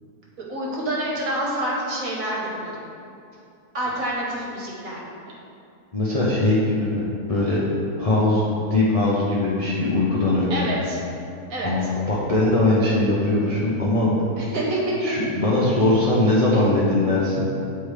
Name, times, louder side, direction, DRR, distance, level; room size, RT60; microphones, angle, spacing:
voice 1, 0.5-2.7 3.7-5.0 10.5-11.0 11.5-11.7 14.4-14.9 16.5-16.6, right 1 dB, 60° right, -4 dB, 1.5 m, -27 dB
voice 2, 5.9-7.6 8.0-8.4 8.7-10.7 11.6-14.1 15.0-17.4, left 2 dB, 40° left, -7 dB, 0.5 m, -21 dB
9.0 x 3.4 x 3.2 m, 2.6 s
omnidirectional pair, 1.7 m